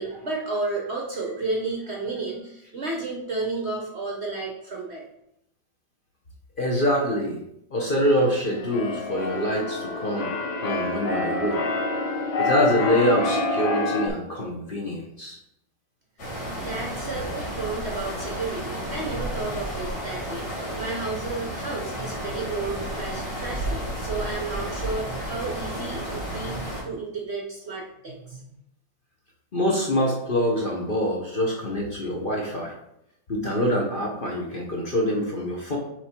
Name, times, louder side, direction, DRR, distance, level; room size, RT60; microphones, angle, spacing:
voice 1, 0.0-5.0 16.6-28.5, right 3 dB, 50° right, -1 dB, 0.9 m, -32 dB
voice 2, 6.6-7.4 7.7-10.3 10.6-11.6 12.4-15.4 29.5-32.7 33.3-35.8, equal, 40° left, -2 dB, 0.7 m, -25 dB
Keyboard (musical), 8.2-14.1, left 3 dB, 90° left, 1.7 m, -27 dB
sound 1, 16.2-26.8, equal, 65° left, 3.1 m, -32 dB
7.3 x 3.3 x 4.4 m, 0.80 s
omnidirectional pair, 2.1 m